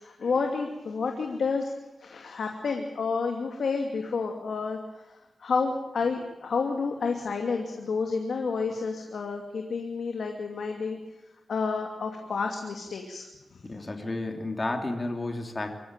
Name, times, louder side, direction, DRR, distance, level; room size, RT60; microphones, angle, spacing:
voice 1, 0.0-1.7 2.0-11.0 11.5-13.8, left 4 dB, 80° left, 3 dB, 2.6 m, -30 dB
voice 2, 13.6-15.7, left 2 dB, 30° left, 4 dB, 3.1 m, -32 dB
25.0 x 15.0 x 9.0 m, 1.0 s
wide cardioid pair, 95°, 0 cm